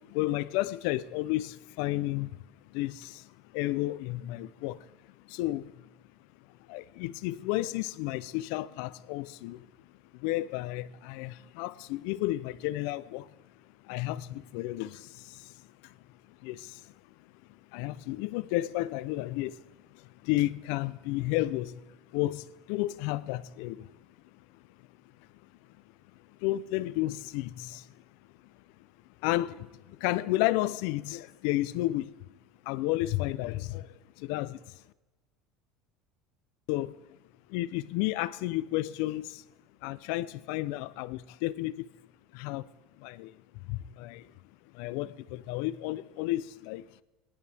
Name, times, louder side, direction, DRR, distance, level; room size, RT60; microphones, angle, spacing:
voice 1, 0.1-2.3 2.7-3.0 3.5-4.8 5.3-5.6 6.7-9.6 10.2-13.2 13.9-14.9 16.4-16.6 17.7-19.5 20.3-21.7 22.1-22.4 22.7-23.8 26.4-27.8 29.2-29.5 30.0-32.1 32.7-33.8 34.3-34.6 36.7-36.9 37.5-39.2 39.8-41.9 42.4-42.6 43.0-43.3 43.7-44.2 44.8-46.8, left 17 dB, 65° left, 0.5 m, -31 dB
19.0 x 11.0 x 3.4 m
cardioid pair, 155°, 0 cm